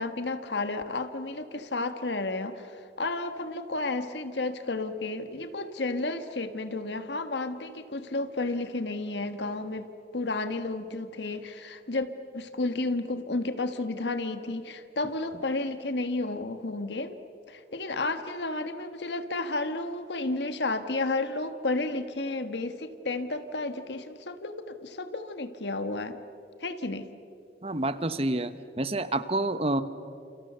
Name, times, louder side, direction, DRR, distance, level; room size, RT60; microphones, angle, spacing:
voice 1, 0.0-9.9 10.1-12.1 12.3-17.2 17.5-26.2 26.6-27.1, left 2 dB, 80° left, 9 dB, 1.5 m, -32 dB
voice 2, 27.6-29.8, right 2 dB, 35° right, 12 dB, 1.1 m, -28 dB
29.5 x 28.5 x 6.9 m, 2.6 s
head